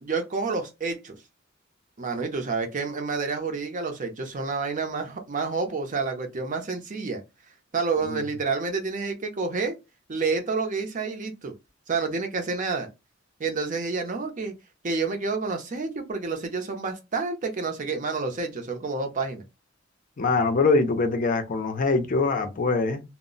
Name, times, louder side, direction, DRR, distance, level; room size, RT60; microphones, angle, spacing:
voice 1, 0.0-1.2 2.0-7.2 7.7-9.8 10.1-11.5 11.9-12.9 13.4-14.5 14.8-19.4, right 4 dB, 40° right, 0.6 m, -29 dB
voice 2, 20.2-23.0, left 3 dB, 45° left, 0.5 m, -23 dB
2.0 x 2.0 x 3.7 m
head